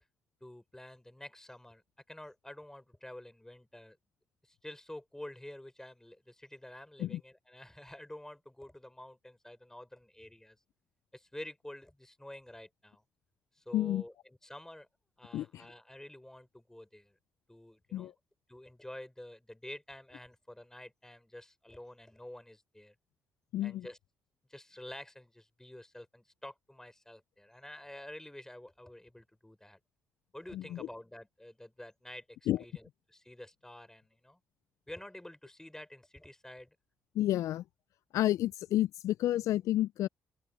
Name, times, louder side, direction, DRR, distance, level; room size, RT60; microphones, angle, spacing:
voice 1, 0.4-1.8 2.1-4.0 4.4-10.6 11.1-13.0 13.6-14.1 14.4-14.9 15.2-17.2 17.5-18.1 18.5-22.9 23.6-24.0 24.5-29.8 30.3-34.4 34.9-36.8, left 1 dB, 10° left, 6.0 m, -49 dB
voice 2, 13.7-14.0 15.3-15.6 17.9-18.1 23.5-23.9 30.5-30.9 32.5-32.6 37.1-37.6 38.1-40.1, left 14 dB, 65° left, 0.8 m, -30 dB
hypercardioid pair, 40°, 6 cm